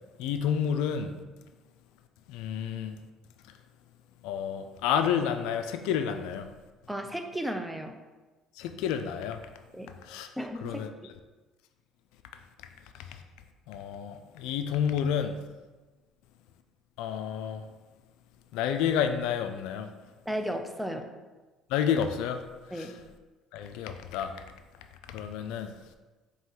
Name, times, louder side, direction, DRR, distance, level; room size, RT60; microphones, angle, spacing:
voice 1, 0.2-1.2 2.3-3.0 4.2-6.5 8.6-9.4 10.0-10.3 10.6-10.9 13.7-15.4 17.0-17.7 18.5-19.9 21.7-22.4 22.7-22.9 23.5-24.4 25.1-25.8, left 8 dB, 80° left, 7 dB, 0.3 m, -30 dB
voice 2, 6.9-8.0 9.7-9.9 10.4-10.9 20.3-21.1 22.7-23.0, equal, 5° right, 5 dB, 0.5 m, -34 dB
3.8 x 2.9 x 4.4 m, 1.2 s
supercardioid pair, 85°, 0 cm